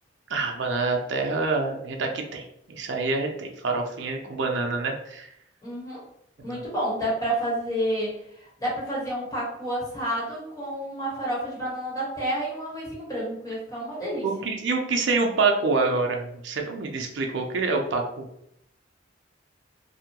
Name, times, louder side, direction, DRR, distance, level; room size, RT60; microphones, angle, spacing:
voice 1, 0.3-5.3 6.5-6.6 14.2-18.3, right 3 dB, 65° right, 2 dB, 0.5 m, -26 dB
voice 2, 5.6-6.0 6.4-14.3, right 1 dB, 20° left, -6 dB, 1.2 m, -30 dB
2.8 x 2.2 x 2.8 m, 0.75 s
head